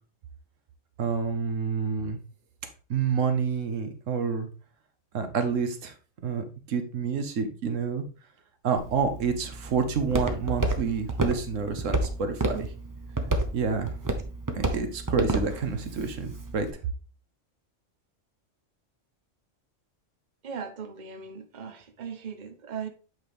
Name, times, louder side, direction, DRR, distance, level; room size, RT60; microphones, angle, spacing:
voice 1, 1.0-2.2 2.9-4.5 5.1-5.9 6.2-8.0 8.6-12.7 13.5-13.9 14.5-16.7, right 5 dB, 85° right, 7 dB, 1.3 m, -28 dB
Walk footsteps, 8.8-16.7, right 2 dB, 20° right, 0.7 m, -31 dB
voice 2, 20.4-22.9, right 6 dB, 40° right, 6 dB, 1.0 m, -38 dB
7.8 x 4.7 x 3.4 m, 0.36 s
omnidirectional pair, 1.3 m